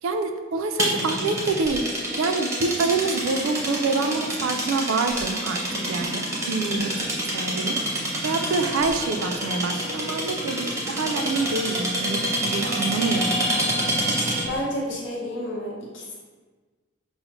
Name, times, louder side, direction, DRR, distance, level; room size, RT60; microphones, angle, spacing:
voice 1, 0.0-7.1 7.3-7.9 8.2-13.4, right 3 dB, 85° right, 6 dB, 0.4 m, -26 dB
sound 1, 0.8-14.6, right 1 dB, 15° right, 0.6 m, -27 dB
voice 2, 14.5-16.1, equal, 70° left, -4 dB, 0.9 m, -30 dB
5.5 x 2.0 x 2.9 m, 1.4 s
head